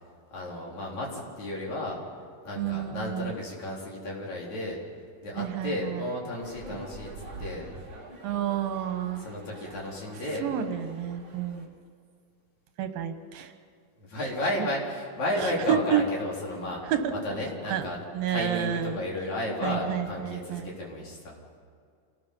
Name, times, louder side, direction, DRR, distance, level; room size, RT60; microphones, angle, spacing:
voice 1, 0.3-2.0 2.4-4.8 5.2-7.1 7.4-7.7 9.2-10.4 14.0-16.8 17.1-18.0 18.3-21.4, left 1 dB, 55° left, -3 dB, 5.1 m, -33 dB
voice 2, 2.6-3.3 5.4-6.1 8.2-9.3 10.4-11.7 12.8-13.5 15.4-16.0 16.9-17.1 17.7-17.8 18.1-19.0 19.6-20.7, right 10 dB, 80° right, 7 dB, 3.0 m, -30 dB
sound 1, 6.4-11.7, right 2 dB, 35° right, 2.9 m, -45 dB
27.0 x 19.0 x 5.5 m, 2.2 s
omnidirectional pair, 4.1 m